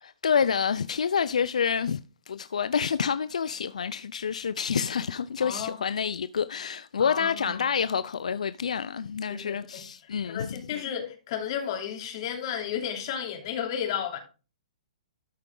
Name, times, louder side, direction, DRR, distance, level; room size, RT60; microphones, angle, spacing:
voice 1, 0.0-2.0 2.3-10.6, left 7 dB, 90° left, 0.4 m, -28 dB
voice 2, 5.4-5.8 7.0-7.7 9.3-14.2, left 8 dB, 45° left, 3.0 m, -33 dB
13.0 x 4.9 x 3.8 m
hypercardioid pair, 150°, 4 cm